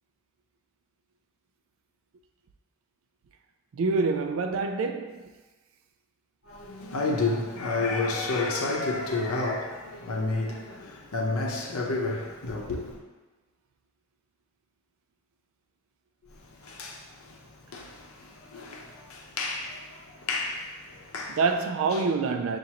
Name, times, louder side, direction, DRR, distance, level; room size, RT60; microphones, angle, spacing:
voice 1, 3.7-5.2 21.3-22.6, right 4 dB, 70° right, 0.4 m, -26 dB
voice 2, 6.5-13.0 16.6-17.4 17.7-21.4 21.9-22.0, left 3 dB, 85° left, 0.7 m, -31 dB
5.8 x 2.6 x 2.8 m
head